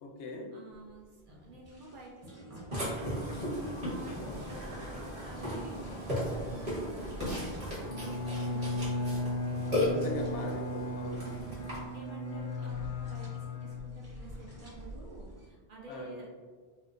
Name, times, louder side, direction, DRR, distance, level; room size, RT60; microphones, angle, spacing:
voice 1, 0.0-0.5 3.9-4.3 9.9-11.4 11.7-11.9 15.9-16.2, left 1 dB, 80° left, 2 dB, 0.9 m, -41 dB
voice 2, 0.5-9.6 11.1-16.3, right 3 dB, 55° right, -2 dB, 0.7 m, -50 dB
sound 1, 0.7-15.5, right 1 dB, 15° right, 0.7 m, -51 dB
Burping eructation, 2.7-11.8, left 1 dB, 35° right, 1.1 m, -36 dB
Bowed string instrument, 7.8-14.4, left 2 dB, 65° left, 0.3 m, -36 dB
4.3 x 2.1 x 2.5 m, 1.5 s
omnidirectional pair, 1.2 m